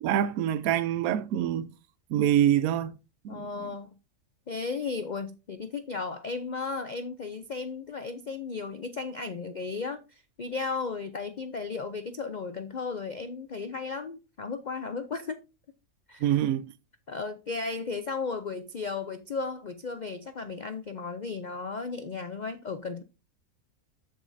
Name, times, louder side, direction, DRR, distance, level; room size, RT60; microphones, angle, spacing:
voice 1, 0.0-1.7 2.1-2.9 3.2-3.7 16.2-16.7, right 11 dB, 75° right, 1.0 m, -25 dB
voice 2, 3.3-3.9 4.5-15.4 16.1-16.3 17.1-23.0, left 4 dB, 80° left, 0.4 m, -35 dB
13.5 x 5.2 x 2.7 m
omnidirectional pair, 1.6 m